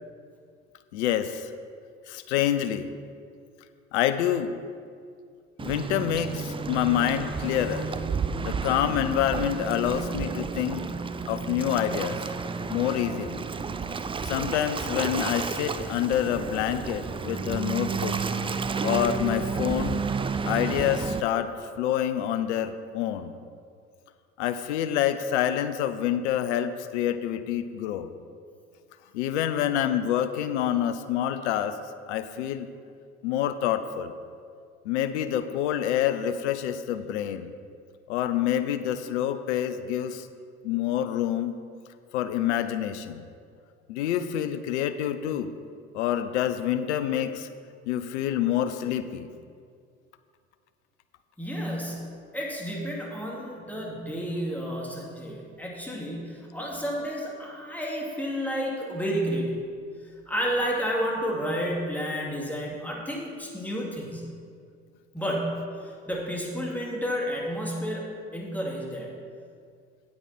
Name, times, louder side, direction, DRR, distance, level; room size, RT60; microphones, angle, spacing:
voice 1, 0.9-1.5 2.1-2.9 3.9-4.6 5.6-7.9 8.4-10.9 11.3-12.2 12.7-13.5 14.2-18.2 18.8-20.0 20.4-23.4 24.4-28.1 29.1-31.8 32.1-32.7 33.2-34.1 34.8-37.5 38.1-40.3 40.6-41.5 42.1-43.3 43.9-45.5 45.9-47.5 47.9-49.3, left 10 dB, 80° left, 11 dB, 0.5 m, -27 dB
Waves surf, 5.6-21.2, right 5 dB, 15° right, 0.4 m, -31 dB
voice 2, 51.4-52.1 52.3-59.6 60.3-64.2 65.1-68.0 68.3-69.1, equal, 5° left, -3 dB, 2.5 m, -31 dB
8.7 x 8.6 x 4.3 m, 2.2 s
hypercardioid pair, 65°, 34 cm